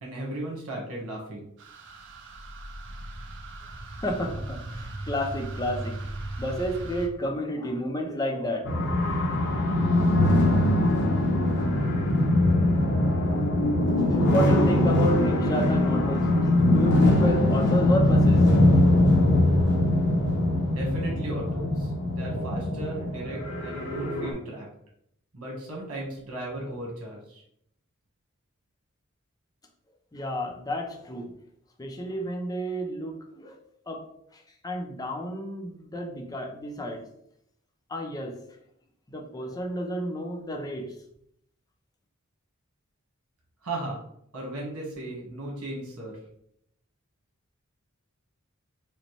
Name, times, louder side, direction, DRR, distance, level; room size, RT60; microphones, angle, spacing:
voice 1, 0.0-1.5 20.7-24.7 25.3-27.4 43.6-44.0 44.3-46.2, right 1 dB, 90° right, 1.5 m, -36 dB
sound 1, 1.6-7.1, right 2 dB, 55° right, 0.5 m, -38 dB
voice 2, 4.0-6.0 6.4-8.8 13.9-16.3 16.6-18.5 30.1-31.3 31.8-33.6 33.9-37.1 37.9-38.5 39.1-40.9, equal, 15° left, 0.5 m, -31 dB
sound 2, 8.6-24.3, left 1 dB, 55° left, 0.8 m, -22 dB
5.0 x 2.1 x 3.2 m
head